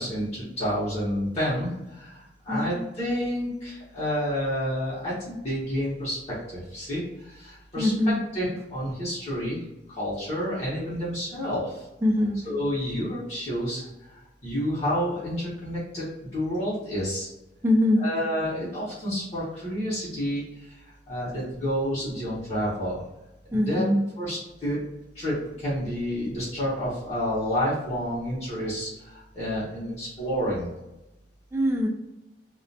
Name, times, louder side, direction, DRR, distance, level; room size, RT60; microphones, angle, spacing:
voice 1, 0.0-9.6 9.9-11.9 12.4-13.8 14.1-17.3 17.9-20.8 21.1-23.0 23.5-23.8 24.2-24.8 25.1-30.7, equal, 40° left, -9 dB, 0.8 m, -29 dB
voice 2, 7.8-8.2 12.0-12.4 17.6-18.0 23.5-24.0 31.5-31.9, left 1 dB, 15° right, 0 dB, 0.3 m, -22 dB
2.4 x 2.2 x 2.6 m, 0.96 s
head